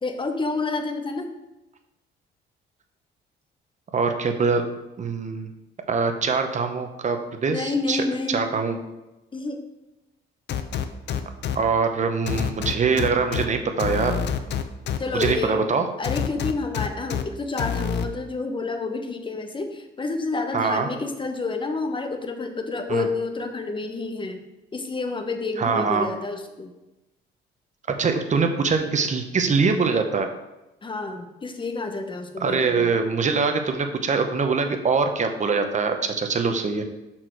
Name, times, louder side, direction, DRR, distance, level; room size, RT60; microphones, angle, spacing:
voice 1, 0.0-1.3 7.5-8.5 9.3-9.6 15.0-15.6 16.0-24.4 24.7-26.7 30.8-32.9, left 3 dB, 25° left, 5 dB, 0.9 m, -29 dB
voice 2, 3.9-4.7 5.0-5.5 5.9-8.8 11.5-14.2 15.1-15.8 20.5-20.9 22.9-23.1 25.6-26.1 28.0-30.3 32.4-36.8, right 5 dB, 35° right, 6 dB, 0.8 m, -23 dB
sound 1, 10.5-11.6 12.3-13.4 13.8-15.3 16.0-17.2 17.6-18.0, left 8 dB, 60° left, 0.5 m, -26 dB
6.3 x 4.4 x 4.5 m, 0.98 s
cardioid pair, 90°, 20 cm